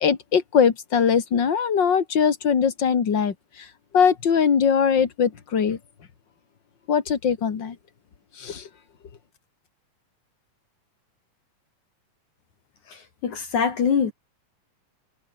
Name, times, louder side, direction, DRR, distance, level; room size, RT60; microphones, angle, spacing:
voice 1, 0.0-3.7 3.9-5.8 6.9-7.8 8.4-8.7, left 7 dB, 40° left, 2.2 m, -21 dB
voice 2, 13.2-14.1, left 6 dB, 60° left, 4.0 m, -22 dB
omnidirectional pair, 3.8 m